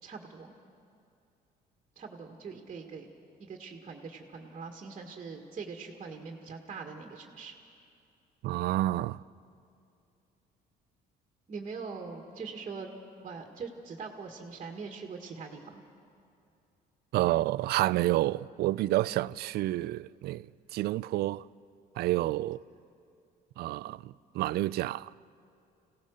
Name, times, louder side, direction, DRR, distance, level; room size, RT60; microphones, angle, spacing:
voice 1, 0.0-0.5 1.9-3.1 3.4-7.6 11.5-12.9 13.2-15.8 23.8-23.9, right 5 dB, 40° right, 1.8 m, -42 dB
voice 2, 8.4-9.2 17.1-21.4 22.0-22.6 23.6-25.1, right 16 dB, 70° right, 0.4 m, -29 dB
26.0 x 17.5 x 6.5 m
cardioid pair, 110°, 17 cm